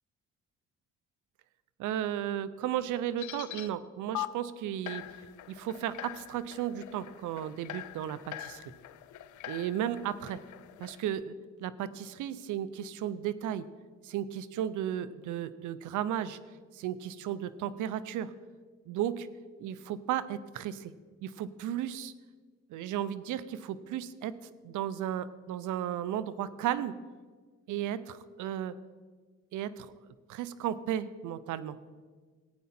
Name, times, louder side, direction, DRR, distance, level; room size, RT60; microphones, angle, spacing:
voice 1, 1.8-5.0 5.5-8.6 9.4-10.4 10.8-13.7 14.0-16.4 16.7-18.3 18.9-19.3 19.6-20.9 21.2-22.1 22.7-24.4 24.6-27.0 27.7-28.8 29.5-29.9 30.3-31.8, right 10 dB, 80° right, 16 dB, 0.6 m, -34 dB
sound 1, 3.2-3.7 4.1-4.3 4.9-11.1, left 14 dB, 75° left, 0.6 m, -43 dB
15.0 x 9.4 x 4.3 m, 1.5 s
cardioid pair, 90°, 30 cm